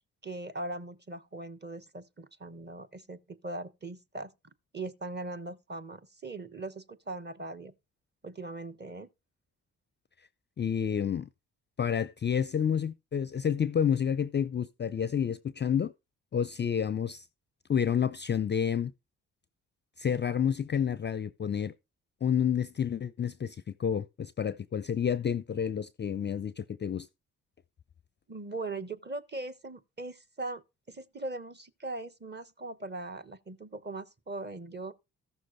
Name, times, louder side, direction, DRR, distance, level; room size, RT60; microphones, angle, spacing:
voice 1, 0.2-4.3 4.7-7.7 8.2-9.1 28.3-30.6 30.9-34.9, right 2 dB, 25° right, 1.1 m, -40 dB
voice 2, 10.6-11.3 11.8-15.9 16.3-17.2 17.7-18.9 20.0-21.7 22.2-27.1, left 8 dB, 25° left, 0.5 m, -29 dB
14.0 x 6.3 x 4.0 m
hypercardioid pair, 40°, 41 cm